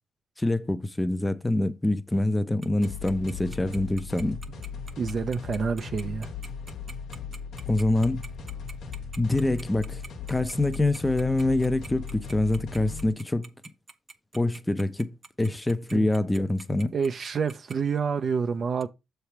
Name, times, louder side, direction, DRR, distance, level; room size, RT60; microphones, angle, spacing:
voice 1, 0.4-4.4 7.7-8.2 9.2-10.0 10.3-13.5 14.3-16.9, left 2 dB, 10° left, 0.6 m, -25 dB
Tick-tock, 2.6-17.7, right 4 dB, 35° right, 0.9 m, -45 dB
sound 1, 2.8-13.1, left 6 dB, 70° left, 1.2 m, -38 dB
voice 2, 5.0-6.3 15.9-16.1 16.9-18.9, right 6 dB, 50° right, 0.6 m, -28 dB
7.0 x 3.4 x 5.8 m
cardioid pair, 90°, 0 cm